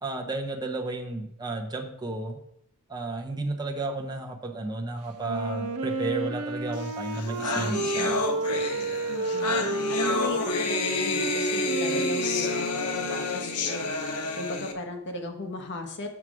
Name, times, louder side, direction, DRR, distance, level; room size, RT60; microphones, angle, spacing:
voice 1, 0.0-2.4 2.9-8.2, right 2 dB, 20° right, 1 dB, 0.8 m, -33 dB
Wind instrument woodwind instrument, 5.2-13.7, right 3 dB, 70° right, 0.8 m, -32 dB
sound 1, 6.9-7.0 7.1-14.7, left 3 dB, 90° left, 0.9 m, -29 dB
voice 2, 9.1-16.1, left 2 dB, 55° left, 4 dB, 1.2 m, -37 dB
6.5 x 6.0 x 4.8 m, 0.71 s
head